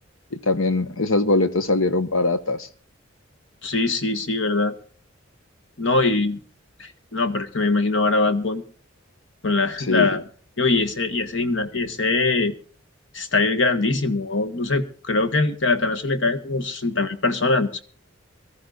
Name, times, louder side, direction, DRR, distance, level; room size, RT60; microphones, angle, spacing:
voice 1, 0.3-2.7 9.9-10.2, left 2 dB, 85° left, 1.2 m, -22 dB
voice 2, 3.6-4.7 5.8-6.4 6.8-8.6 9.4-10.2 10.6-12.5 13.1-17.8, left 3 dB, 65° left, 1.5 m, -22 dB
24.0 x 14.0 x 2.5 m
head